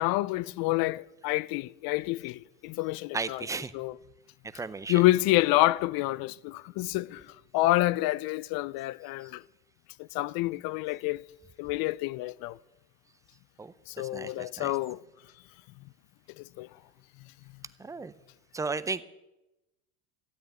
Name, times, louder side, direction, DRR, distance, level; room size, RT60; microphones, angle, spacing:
voice 1, 0.0-3.5 3.7-4.0 4.9-9.4 10.0-11.2 11.6-12.6 13.9-15.0 16.4-16.7, left 18 dB, 50° left, 0.5 m, -28 dB
voice 2, 3.1-3.7 4.5-5.0 13.6-14.7 17.8-18.1 18.5-19.0, right 4 dB, 5° right, 0.4 m, -35 dB
13.5 x 8.7 x 9.2 m
supercardioid pair, 110°, 48 cm